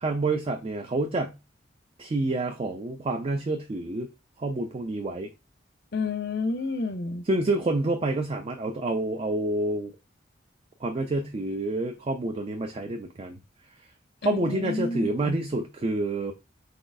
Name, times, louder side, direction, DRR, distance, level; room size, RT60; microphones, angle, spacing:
voice 1, 0.0-1.4 2.0-4.1 4.4-5.3 7.3-9.9 10.8-13.4 14.2-16.3, right 2 dB, 30° right, 0.4 m, -28 dB
voice 2, 5.9-7.3 14.2-15.4, left 3 dB, 60° left, 0.6 m, -30 dB
4.1 x 3.9 x 2.6 m
head